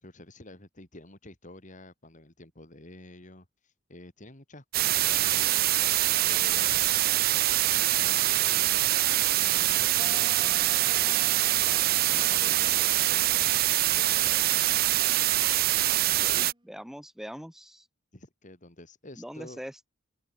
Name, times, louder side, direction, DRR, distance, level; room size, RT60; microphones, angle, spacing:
voice 1, 0.0-7.3 7.7-11.6 12.1-13.5 13.9-15.2 18.1-19.6, left 1 dB, 40° left, 3.7 m, -49 dB
sound 1, 4.7-16.5, right 15 dB, 50° right, 0.4 m, -24 dB
sound 2, 10.0-16.7, right 3 dB, 25° right, 4.5 m, -49 dB
voice 2, 16.2-17.9 19.2-19.9, equal, ahead, 2.9 m, -42 dB
open air
head